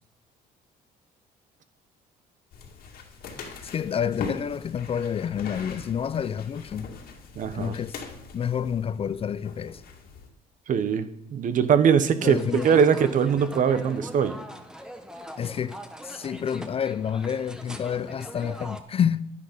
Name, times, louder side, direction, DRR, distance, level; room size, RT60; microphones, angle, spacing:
sound 1, 2.5-10.3, left 4 dB, 65° left, 2.3 m, -41 dB
voice 1, 3.6-6.9 7.5-8.0 8.3-9.8 12.2-13.0 15.4-19.3, left 8 dB, 35° left, 0.4 m, -29 dB
voice 2, 7.4-7.8 10.7-14.4, right 7 dB, 50° right, 1.1 m, -22 dB
sound 2, 12.2-18.8, equal, 5° right, 1.1 m, -42 dB
10.5 x 10.0 x 5.3 m
cardioid pair, 110°, 17 cm